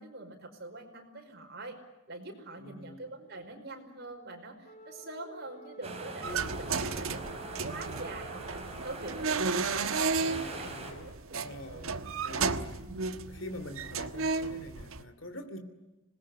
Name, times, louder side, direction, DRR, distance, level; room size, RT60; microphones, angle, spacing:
voice 1, 0.0-1.8 2.1-8.6 8.8-11.9 12.8-12.9, right 2 dB, 50° right, 4 dB, 5.2 m, -44 dB
voice 2, 2.6-3.1 6.2-7.4 10.2-11.1 11.4-12.8 13.3-15.6, left 1 dB, 65° left, 9 dB, 3.0 m, -45 dB
Wind instrument woodwind instrument, 4.6-9.0, right 1 dB, 35° left, 2.0 m, -52 dB
sound 1, 5.8-10.9, right 2 dB, 30° right, 5.0 m, -42 dB
sound 2, 6.2-15.0, right 4 dB, 85° right, 1.3 m, -33 dB
26.5 x 20.5 x 10.0 m, 1.0 s
head